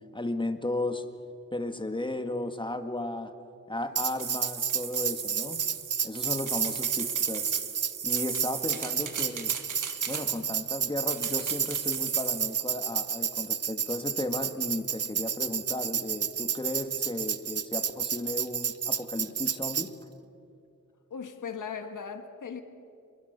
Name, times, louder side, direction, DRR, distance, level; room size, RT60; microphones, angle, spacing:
voice 1, 0.1-1.1 1.5-3.3 3.7-5.6 6.0-7.5 8.0-9.6 10.1-19.9, left 1 dB, 15° left, 7 dB, 1.8 m, -34 dB
Tambourine, 4.0-19.9, right 7 dB, 55° right, 0.8 m, -30 dB
sound 1, 4.0-10.6 11.1-12.6, right 7 dB, 85° right, 1.9 m, -36 dB
voice 2, 21.1-22.6, left 6 dB, 85° left, 7 dB, 1.9 m, -38 dB
29.5 x 21.5 x 6.8 m, 2.6 s
wide cardioid pair, 80°, 30 cm